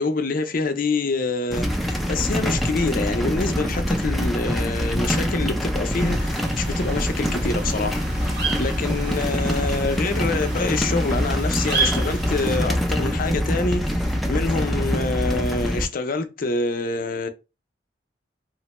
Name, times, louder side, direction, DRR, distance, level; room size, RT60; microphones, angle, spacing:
voice 1, 0.0-17.3, left 3 dB, 50° left, 0.5 m, -26 dB
sound 1, 1.5-15.9, equal, ahead, 0.4 m, -24 dB
sound 2, 5.9-12.6, right 4 dB, 70° right, 1.0 m, -32 dB
3.1 x 2.2 x 2.9 m
head